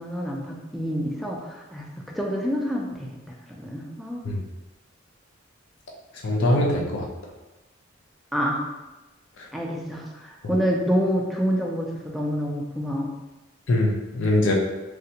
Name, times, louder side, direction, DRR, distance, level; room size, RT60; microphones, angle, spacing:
voice 1, 0.0-4.2 8.3-8.7 9.5-13.1, equal, ahead, -2 dB, 0.4 m, -27 dB
voice 2, 6.2-7.1 13.7-14.5, left 1 dB, 65° left, -2 dB, 0.5 m, -22 dB
3.3 x 2.5 x 2.8 m, 1.1 s
head